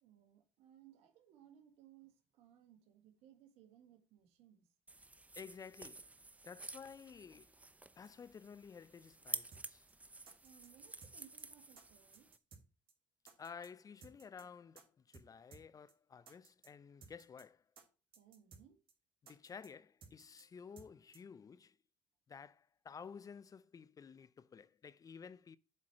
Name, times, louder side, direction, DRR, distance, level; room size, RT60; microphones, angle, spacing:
voice 1, 0.0-4.7 10.4-12.3 18.1-18.8, right 10 dB, 75° right, 1.6 m, -64 dB
sound 1, 4.9-12.4, right 2 dB, 15° right, 0.6 m, -50 dB
voice 2, 5.4-6.1 6.5-7.6 8.0-9.9 13.4-17.6 19.2-21.8 22.3-25.6, left 6 dB, 35° left, 0.5 m, -53 dB
sound 2, 9.5-9.6 9.9-10.0 10.3-10.7 11.0-11.4 11.8-11.9 12.1-12.6 12.9-13.0 13.3-13.7 14.0-14.4 14.8-14.9 15.1-15.3 15.5-15.6 15.9-16.0 16.3-16.7 17.0-17.4 17.8-17.9 18.1-18.6 18.9-19.0 19.3-19.7 20.0-20.4 20.8-20.9 21.1-21.2, right 5 dB, 55° right, 2.3 m, -59 dB
7.6 x 4.8 x 5.7 m
supercardioid pair, 70°, 10 cm